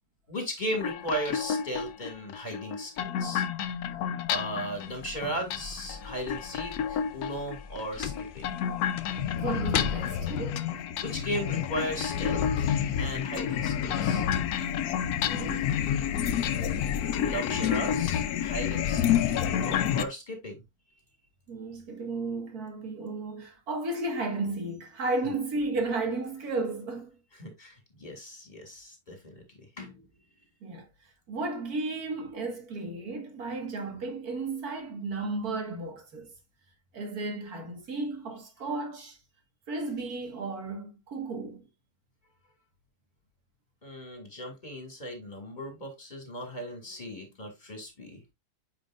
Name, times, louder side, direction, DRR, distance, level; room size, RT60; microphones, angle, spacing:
voice 1, 0.3-3.4 4.3-8.5 11.0-12.7 13.0-14.3 17.2-19.1 19.4-20.6 25.2-25.3 27.4-29.4 29.8-30.1 43.8-48.2, equal, 30° left, 2.7 m, -36 dB
sound 1, 0.7-20.1, left 9 dB, 90° left, 1.2 m, -29 dB
sound 2, 4.7-10.2, left 8 dB, 60° left, 0.5 m, -38 dB
voice 2, 9.4-10.7 15.0-15.7 21.5-27.1 30.6-30.9 31.3-36.3 36.9-39.2 39.7-41.7, right 3 dB, 85° right, 2.2 m, -34 dB
9.3 x 5.2 x 2.5 m
omnidirectional pair, 1.6 m